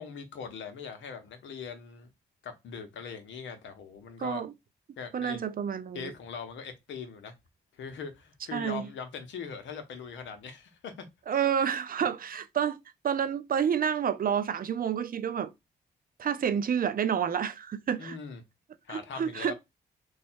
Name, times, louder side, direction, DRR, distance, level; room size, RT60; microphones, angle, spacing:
voice 1, 0.0-2.1 2.4-4.4 5.0-5.4 5.9-7.3 7.7-11.1 18.0-18.4 18.8-19.5, left 6 dB, 70° left, 0.9 m, -41 dB
voice 2, 4.2-4.5 5.1-6.1 8.5-8.9 11.3-12.8 13.0-15.5 16.2-18.2 18.9-19.5, right 8 dB, 45° right, 0.6 m, -29 dB
3.1 x 2.3 x 4.3 m
hypercardioid pair, 45°, 20 cm